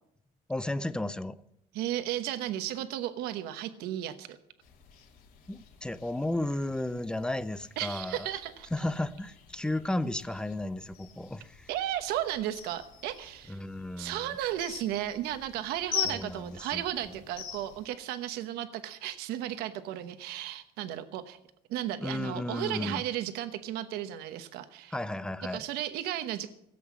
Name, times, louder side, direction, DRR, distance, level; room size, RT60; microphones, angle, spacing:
voice 1, 0.5-1.4 5.5-8.3 8.7-11.7 13.5-14.4 16.0-17.2 22.0-23.0 24.9-25.6, left 1 dB, 5° left, 14 dB, 0.5 m, -34 dB
voice 2, 1.7-4.4 7.8-8.7 11.7-13.6 14.0-21.4 21.7-24.9 25.5-26.5, right 12 dB, 75° right, 10 dB, 1.0 m, -34 dB
sound 1, 4.6-17.9, left 9 dB, 65° left, 2.9 m, -43 dB
17.5 x 7.8 x 8.5 m, 0.78 s
cardioid pair, 150°, 16 cm